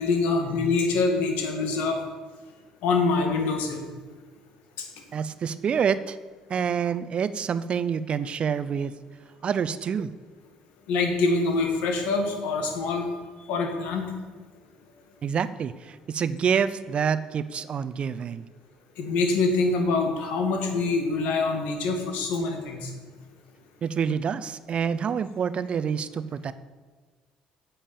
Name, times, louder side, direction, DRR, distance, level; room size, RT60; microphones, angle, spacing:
voice 1, 0.0-2.0 2.8-3.9 4.8-4.9 10.9-13.1 13.5-14.1 19.0-22.9, left 3 dB, 75° left, 4 dB, 2.1 m, -25 dB
voice 2, 5.1-6.2 6.5-8.9 9.4-10.1 15.2-18.4 23.8-26.5, right 7 dB, 50° right, 14 dB, 0.6 m, -27 dB
8.9 x 7.2 x 8.5 m, 1.4 s
supercardioid pair, 75°, 2 cm